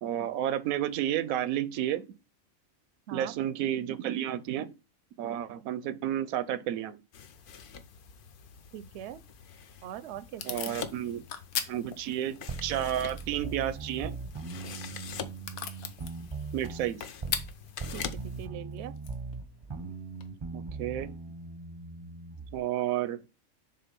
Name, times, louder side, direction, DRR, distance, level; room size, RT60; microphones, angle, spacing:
voice 1, 0.0-2.1 3.1-4.7 5.2-7.0 10.5-11.2 11.7-14.2 16.5-17.1 20.5-21.1 22.5-23.2, right 11 dB, 85° right, 1.0 m, -31 dB
sound 1, 7.1-18.5, left 7 dB, 55° left, 0.6 m, -45 dB
voice 2, 8.7-9.2 9.8-10.7 17.9-18.9, right 10 dB, 65° right, 0.7 m, -42 dB
Packing tape duct tape / Tearing, 9.5-20.3, left 8 dB, 90° left, 1.3 m, -42 dB
sound 2, 12.5-17.5 17.8-22.6, right 4 dB, 30° right, 0.6 m, -40 dB
6.8 x 3.5 x 5.2 m
omnidirectional pair, 1.4 m